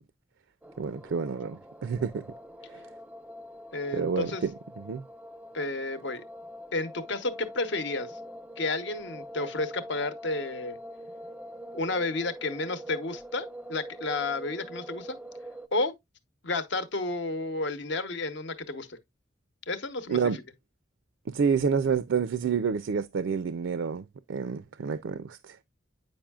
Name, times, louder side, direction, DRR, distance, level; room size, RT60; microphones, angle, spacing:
sound 1, 0.6-15.7, equal, 10° right, 0.3 m, -44 dB
voice 1, 0.8-2.2 2.7-2.8 3.9-4.5 4.8-5.0 20.1-20.4 21.3-25.6, right 6 dB, 75° right, 0.4 m, -29 dB
voice 2, 3.7-4.5 5.5-6.2 6.7-8.2 8.6-10.8 11.7-15.2 15.7-15.9 16.4-19.0 19.7-20.4, left 2 dB, 65° left, 0.9 m, -31 dB
8.7 x 5.4 x 2.3 m
head